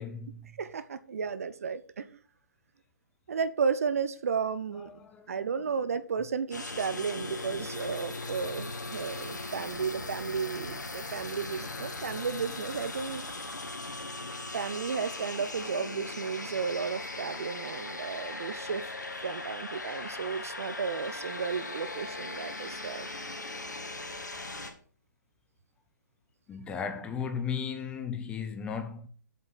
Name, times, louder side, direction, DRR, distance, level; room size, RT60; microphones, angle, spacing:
voice 1, 0.0-0.6 4.8-5.4 11.7-11.8 26.5-29.1, left 6 dB, 10° left, 1.0 m, -36 dB
voice 2, 0.6-2.1 3.3-5.0 5.3-13.6 14.5-18.9 19.2-23.1, right 6 dB, 50° right, 0.8 m, -33 dB
sound 1, 6.5-24.7, left 2 dB, 70° left, 2.4 m, -39 dB
8.4 x 7.5 x 6.4 m
figure-of-eight pair, 135°, 10 cm